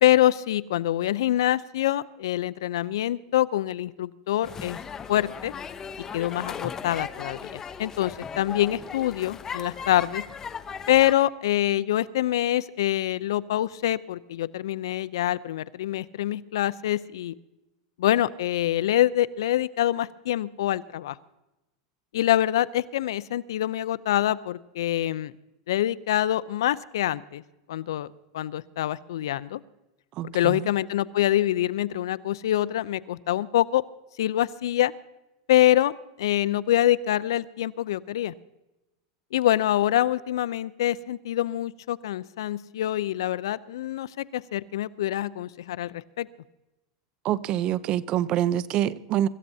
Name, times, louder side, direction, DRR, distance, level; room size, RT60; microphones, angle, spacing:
voice 1, 0.0-4.8 5.1-5.5 6.1-10.2 10.9-17.3 18.0-21.2 22.1-25.3 25.7-27.4 27.7-28.1 28.3-29.6 30.2-33.8 34.2-34.9 35.5-35.9 36.2-38.3 39.3-46.3, left 13 dB, 80° left, 17 dB, 0.5 m, -25 dB
sound 1, 4.4-11.1, left 6 dB, 25° left, 0.7 m, -37 dB
voice 2, 30.2-30.7 47.2-49.3, right 11 dB, 45° right, 18 dB, 0.6 m, -26 dB
25.0 x 14.0 x 2.8 m, 1.0 s
supercardioid pair, 125°, 2 cm